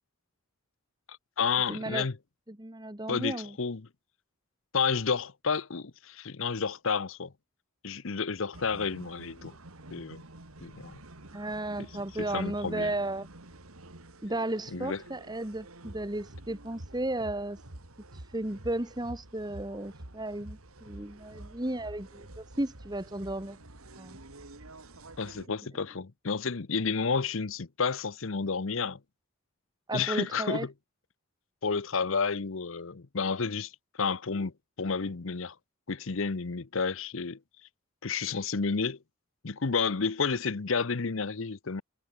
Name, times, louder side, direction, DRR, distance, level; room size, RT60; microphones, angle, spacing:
voice 1, 1.1-2.2 3.1-3.9 4.7-7.3 7.8-9.5 9.9-10.2 10.6-11.0 11.8-11.9 12.2-12.9 14.7-15.0 25.2-29.0 29.9-30.7 31.6-33.7 34.0-34.5 34.8-35.5 35.9-37.4 38.0-39.0 39.4-41.8, left 5 dB, 65° left, 0.8 m, -31 dB
voice 2, 1.7-2.1 2.5-3.5 11.3-13.3 14.2-17.6 18.1-23.6 24.0-24.2 29.9-30.7, right 1 dB, 20° right, 1.6 m, -34 dB
sound 1, 8.5-25.5, right 1 dB, 85° right, 2.9 m, -49 dB
head